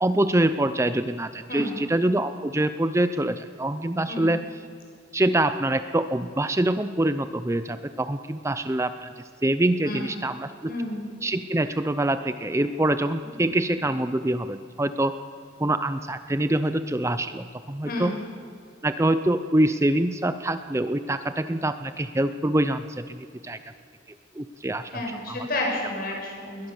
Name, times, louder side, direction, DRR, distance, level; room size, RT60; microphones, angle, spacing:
voice 1, 0.0-4.4 5.1-9.1 9.4-10.7 11.2-15.1 15.6-18.1 18.8-23.6 24.4-25.4, right 1 dB, 15° right, 11 dB, 0.6 m, -25 dB
voice 2, 10.7-11.0 13.2-13.4 17.8-18.1 24.9-26.7, left 1 dB, 50° left, 0 dB, 6.0 m, -31 dB
21.5 x 19.5 x 7.1 m, 2.3 s
head